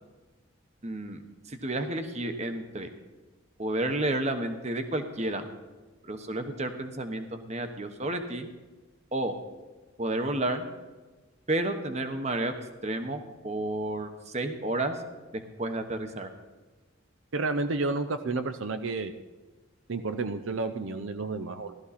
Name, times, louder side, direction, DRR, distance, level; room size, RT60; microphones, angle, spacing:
voice 1, 0.8-1.2 1.5-2.9 3.6-5.5 6.0-8.5 9.1-9.4 10.0-10.7 11.5-12.5 12.8-15.0 15.3-16.3, right 1 dB, 35° right, 7 dB, 1.1 m, -31 dB
voice 2, 17.3-19.1 19.9-21.8, right 3 dB, 70° right, 9 dB, 0.7 m, -31 dB
16.0 x 13.0 x 4.2 m, 1.3 s
head